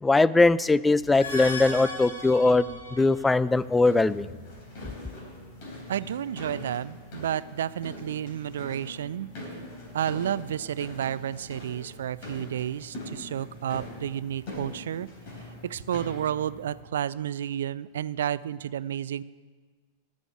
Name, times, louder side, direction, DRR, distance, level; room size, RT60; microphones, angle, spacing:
voice 1, 0.0-4.3, left 3 dB, 10° left, 18 dB, 0.4 m, -21 dB
sound 1, 1.0-3.3, left 2 dB, 70° left, 2.2 m, -36 dB
sound 2, 3.3-16.8, left 1 dB, 45° left, 4.0 m, -43 dB
voice 2, 5.9-9.3 9.9-15.1 15.6-19.2, right 10 dB, 60° right, 19 dB, 0.3 m, -31 dB
14.0 x 6.4 x 8.4 m, 1.5 s
figure-of-eight pair, 90°, 0 cm